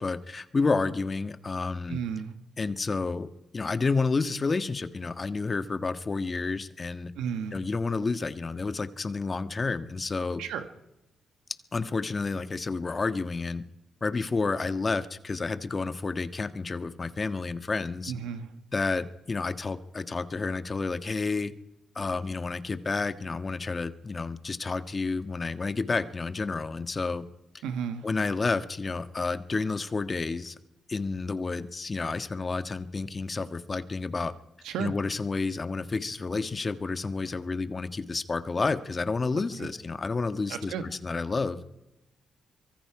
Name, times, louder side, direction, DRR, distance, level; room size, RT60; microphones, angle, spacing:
voice 1, 0.0-2.0 2.6-3.3 3.5-7.1 7.5-10.4 11.7-13.6 14.0-18.1 18.7-21.5 21.9-27.2 28.0-30.6 30.9-34.3 34.8-41.6, left 4 dB, 40° left, 10 dB, 1.4 m, -30 dB
voice 2, 1.9-2.3 7.2-7.6 10.4-10.7 18.1-18.5 27.6-28.0 34.6-34.9 40.5-40.8, right 7 dB, 85° right, 9 dB, 1.5 m, -33 dB
25.0 x 22.5 x 4.9 m, 0.95 s
supercardioid pair, 55°, 0 cm